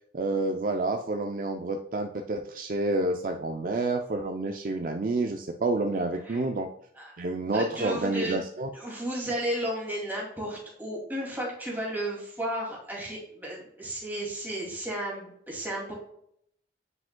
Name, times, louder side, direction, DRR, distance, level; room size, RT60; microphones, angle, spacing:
voice 1, 0.1-6.7 7.2-8.7, right 2 dB, 45° right, 5 dB, 0.4 m, -29 dB
voice 2, 7.5-8.4 8.7-15.9, right 1 dB, 10° right, -3 dB, 2.4 m, -33 dB
9.6 x 5.0 x 2.2 m, 0.70 s
head